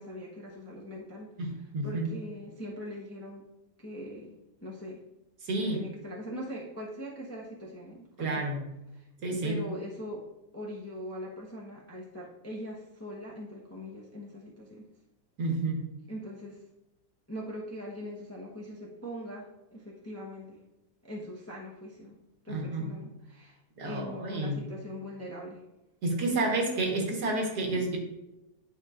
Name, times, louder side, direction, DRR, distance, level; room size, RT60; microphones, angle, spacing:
voice 1, 0.0-3.4 3.8-5.0 5.6-8.5 8.9-9.1 9.4-10.2 10.5-14.8 16.1-16.6 17.3-20.6 21.0-22.2 22.4-25.6, equal, 15° left, -4 dB, 0.7 m, -41 dB
voice 2, 1.4-2.1 5.4-5.8 8.2-8.6 9.2-9.6 15.4-15.8 22.5-22.9 23.8-24.6 26.0-28.0, right 2 dB, 65° right, 1 dB, 1.8 m, -30 dB
10.0 x 5.0 x 2.5 m, 0.95 s
omnidirectional pair, 1.9 m